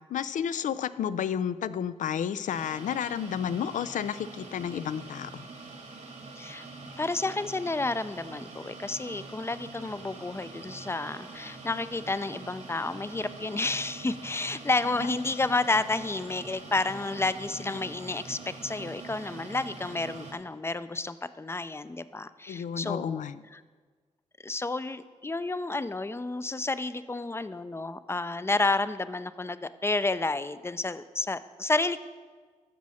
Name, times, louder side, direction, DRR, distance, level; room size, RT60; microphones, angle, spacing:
voice 1, 0.1-5.5 14.9-15.2 22.5-23.4, left 8 dB, 75° left, 15 dB, 0.4 m, -31 dB
sound 1, 2.5-20.3, right 3 dB, 65° right, 1.6 m, -45 dB
voice 2, 7.0-23.2 23.5-23.6 24.4-32.0, left 3 dB, 20° left, 14 dB, 0.5 m, -30 dB
13.5 x 6.2 x 4.2 m, 1.5 s
cardioid pair, 55°, 13 cm